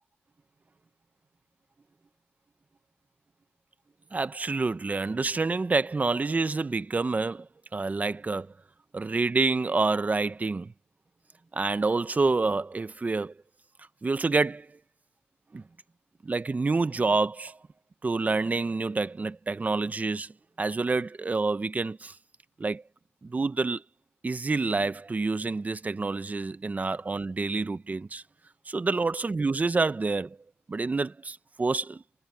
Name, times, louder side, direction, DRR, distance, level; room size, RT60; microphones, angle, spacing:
voice 1, 4.1-8.5 8.9-10.7 11.5-13.3 14.0-14.7 15.5-15.6 16.2-17.6 18.0-20.3 20.6-22.1 22.6-22.8 23.2-23.8 24.2-28.2 28.7-30.4 30.7-32.0, right 3 dB, 35° right, 1.1 m, -28 dB
cardioid pair, 55°, 5 cm